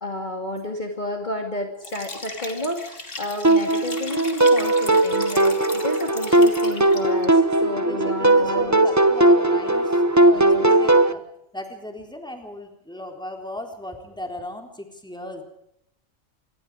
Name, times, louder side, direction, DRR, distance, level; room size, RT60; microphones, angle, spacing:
voice 1, 0.0-8.9 10.3-10.7, left 1 dB, 35° left, 3 dB, 2.7 m, -31 dB
Liquid, 1.8-7.3, left 3 dB, 60° left, 3.2 m, -37 dB
sound 1, 3.4-11.1, right 2 dB, 15° right, 0.9 m, -18 dB
voice 2, 7.8-11.2 11.5-15.4, left 1 dB, 5° left, 3 dB, 3.9 m, -37 dB
26.5 x 22.5 x 5.0 m, 0.75 s
omnidirectional pair, 1.4 m